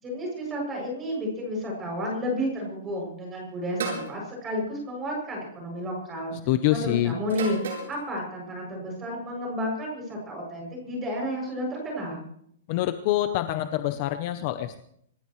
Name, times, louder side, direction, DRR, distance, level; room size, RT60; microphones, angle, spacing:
voice 1, 0.0-6.3 6.7-12.2, equal, 15° right, -1 dB, 7.1 m, -31 dB
sound 1, 3.8-4.1 5.3-5.7 7.3-8.0, right 4 dB, 80° right, 8.0 m, -33 dB
voice 2, 6.5-7.1 12.7-14.8, left 14 dB, 30° left, 9 dB, 0.7 m, -25 dB
27.0 x 15.5 x 3.2 m, 0.69 s
hypercardioid pair, 180°, 0 cm